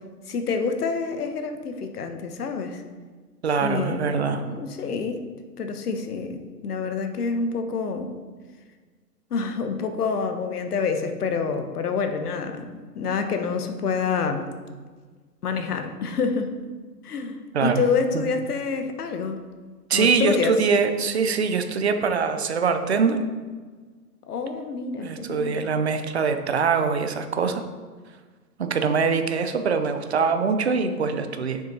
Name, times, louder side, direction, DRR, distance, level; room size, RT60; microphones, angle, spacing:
voice 1, 0.3-2.8 3.6-5.2 5.6-8.1 9.3-14.5 15.4-16.5 17.0-19.4 19.9-20.6 24.3-25.6, left 5 dB, 65° left, 7 dB, 1.1 m, -27 dB
voice 2, 3.4-4.4 17.5-17.8 18.1-18.2 19.9-23.2 25.0-27.6 28.6-31.6, right 5 dB, 40° right, 8 dB, 0.6 m, -23 dB
7.2 x 6.4 x 4.1 m, 1.4 s
hypercardioid pair, 165°, 49 cm